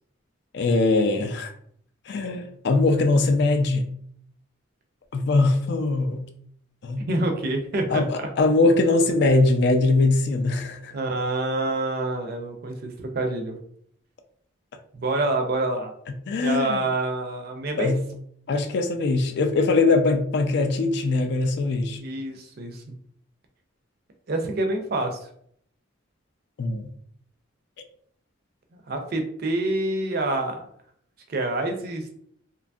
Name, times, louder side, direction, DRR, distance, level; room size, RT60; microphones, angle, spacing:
voice 1, 0.5-1.5 2.1-3.9 5.1-6.3 6.8-7.0 7.9-10.9 16.3-16.8 17.8-18.0 18.5-22.0 26.6-26.9, left 3 dB, 55° left, 6 dB, 0.3 m, -21 dB
voice 2, 7.0-8.0 10.9-13.6 14.9-15.9 16.4-17.9 22.0-22.9 24.3-25.2 28.7-30.6 31.3-32.1, right 2 dB, 50° right, 4 dB, 0.4 m, -27 dB
2.7 x 2.5 x 2.3 m, 0.66 s
head